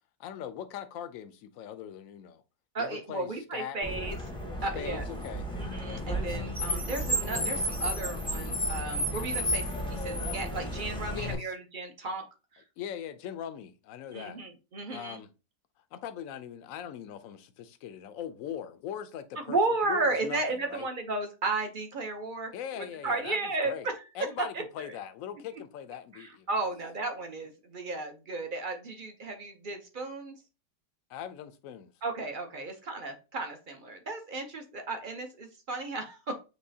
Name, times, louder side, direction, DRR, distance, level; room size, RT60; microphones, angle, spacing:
voice 1, 0.2-2.4 2.8-3.8 4.7-5.5 11.1-11.5 12.8-14.4 14.9-15.3 15.9-19.6 19.8-20.9 22.5-23.9 24.1-26.5 31.1-31.9, left 9 dB, 65° left, 0.8 m, -40 dB
voice 2, 2.7-4.2 4.6-5.0 5.6-9.6 9.9-12.3 12.5-12.6 14.1-15.2 19.5-23.9 24.5-24.9 26.1-30.3 32.0-36.4, right 3 dB, 45° right, 0.7 m, -34 dB
Car, 3.8-11.3, equal, 5° left, 0.6 m, -32 dB
6.4 x 2.9 x 2.7 m
omnidirectional pair, 1.9 m